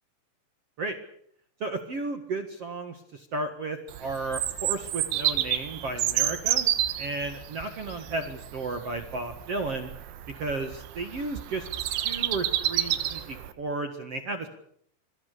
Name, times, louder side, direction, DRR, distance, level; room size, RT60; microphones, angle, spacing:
voice 1, 1.6-6.7 7.0-9.9 10.4-14.5, right 3 dB, 55° right, 7 dB, 1.7 m, -33 dB
Bird vocalization bird call bird song, 3.9-13.5, right 13 dB, 85° right, 3.8 m, -30 dB
27.0 x 23.5 x 6.8 m, 0.67 s
omnidirectional pair, 5.4 m